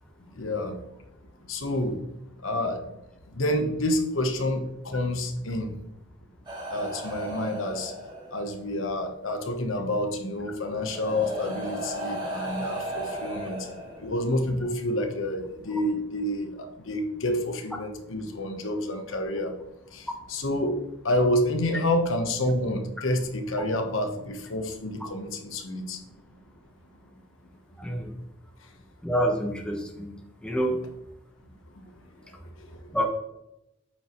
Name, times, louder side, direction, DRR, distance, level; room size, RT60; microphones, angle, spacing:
voice 1, 0.3-0.8 1.5-2.0 2.4-2.9 3.3-5.7 6.7-7.9 8.3-13.7 14.0-19.5 19.9-26.0, left 1 dB, 90° left, 5 dB, 1.0 m, -28 dB
sound 1, 6.4-8.6 9.9-10.0 10.7-14.4 15.4-15.6, right 1 dB, 25° right, 2.2 m, -35 dB
voice 2, 27.8-28.1 29.0-30.1 30.4-30.8 32.9-33.0, equal, 5° left, 1 dB, 1.0 m, -27 dB
8.7 x 5.3 x 3.1 m, 0.89 s
head